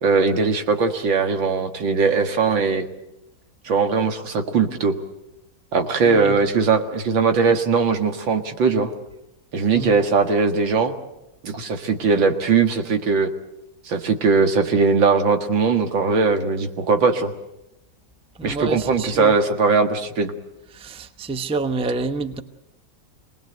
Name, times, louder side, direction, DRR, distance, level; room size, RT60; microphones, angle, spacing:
voice 1, 0.0-2.9 3.6-4.9 5.7-8.9 9.5-10.9 11.4-13.3 13.9-17.3 18.4-20.3, right 4 dB, 85° right, 6 dB, 2.5 m, -20 dB
voice 2, 6.0-6.4 9.7-9.9 18.4-19.4 20.7-22.4, right 3 dB, 5° right, 9 dB, 0.5 m, -28 dB
26.5 x 19.5 x 7.9 m, 0.92 s
omnidirectional pair, 2.0 m